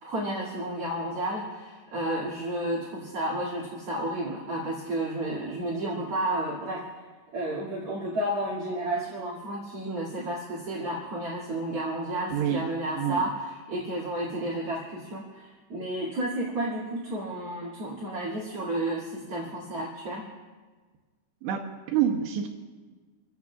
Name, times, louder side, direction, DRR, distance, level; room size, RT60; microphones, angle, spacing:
voice 1, 0.0-6.8 7.3-20.2, right 1 dB, 40° right, -6 dB, 2.9 m, -32 dB
voice 2, 12.3-12.7 13.0-13.2 21.4-21.6 21.9-22.5, right 9 dB, 85° right, 1 dB, 3.1 m, -26 dB
29.0 x 15.5 x 2.4 m, 1.4 s
omnidirectional pair, 4.7 m